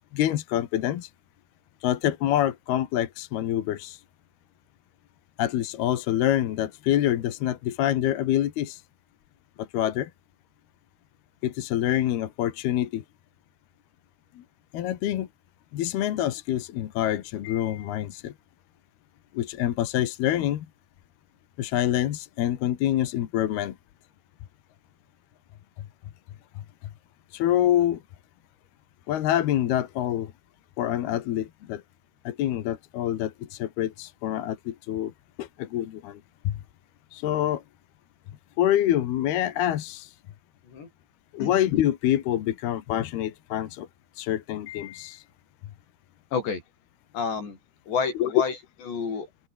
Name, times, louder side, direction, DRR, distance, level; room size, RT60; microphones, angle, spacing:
voice 1, 0.1-1.1 1.8-4.0 5.4-8.8 9.6-10.1 11.4-13.0 14.7-15.3 15.7-18.3 19.3-20.7 21.6-23.7 27.3-28.0 29.1-30.3 30.8-31.8 32.2-35.1 35.4-36.2 36.4-36.6 37.1-37.6 38.6-40.1 41.3-43.9 44.2-45.2 48.2-48.3, left 12 dB, 75° left, 3.4 m, -26 dB
voice 2, 47.1-47.6 47.9-48.6 48.9-49.3, left 5 dB, 90° left, 8.3 m, -29 dB
open air
omnidirectional pair, 4.8 m